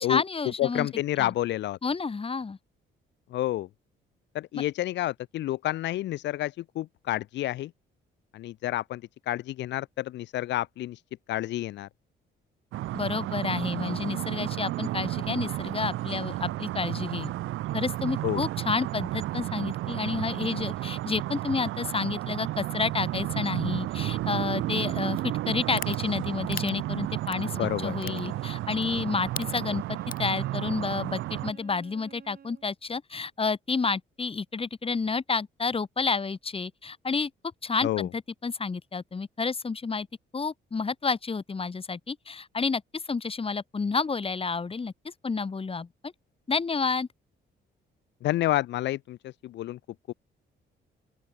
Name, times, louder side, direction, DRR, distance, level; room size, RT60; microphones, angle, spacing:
voice 1, 0.1-0.9 1.2-1.3 1.8-2.6 4.5-4.6 12.9-17.3 17.7-29.8 30.2-37.3 37.6-40.1 40.3-44.9 45.2-46.1 46.5-47.1, left 4 dB, 30° left, 1.7 m, -30 dB
voice 2, 0.6-1.8 3.3-3.7 4.3-7.7 8.3-11.0 11.3-11.9 18.2-18.4 27.6-28.3 37.8-38.1 48.2-49.8 50.1-50.2, left 14 dB, 65° left, 0.4 m, -29 dB
sound 1, 12.7-31.5, right 15 dB, 85° right, 1.4 m, -32 dB
sound 2, 25.2-25.3 25.8-26.0 26.5-26.7 27.3-27.5 28.0-28.2 28.8-28.9 29.2-29.7 30.1-30.3, left 7 dB, 45° left, 2.1 m, -35 dB
Bowed string instrument, 27.4-32.7, right 7 dB, 50° right, 3.6 m, -54 dB
open air
cardioid pair, 90°, 20 cm